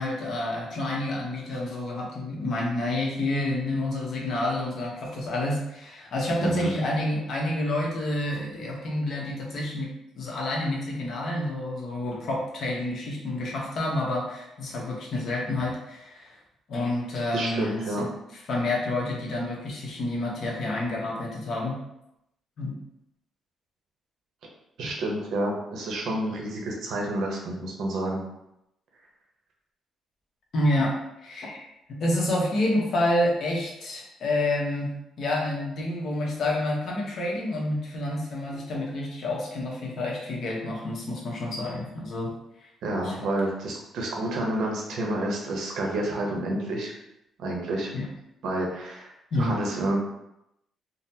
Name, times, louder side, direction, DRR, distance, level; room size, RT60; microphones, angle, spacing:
voice 1, 0.0-16.4 16.7-18.1 18.5-21.8 22.6-22.8 30.5-31.6 31.9-34.9 35.2-42.3 43.0-43.2 47.9-48.1 49.3-49.5, left 1 dB, 60° left, -2 dB, 0.8 m, -28 dB
voice 2, 6.4-6.7 17.3-18.0 24.8-28.2 42.8-46.9 47.4-47.9 48.4-50.0, right 1 dB, 75° right, 0 dB, 0.7 m, -29 dB
3.8 x 2.0 x 2.7 m, 0.84 s
cardioid pair, 130°, 0 cm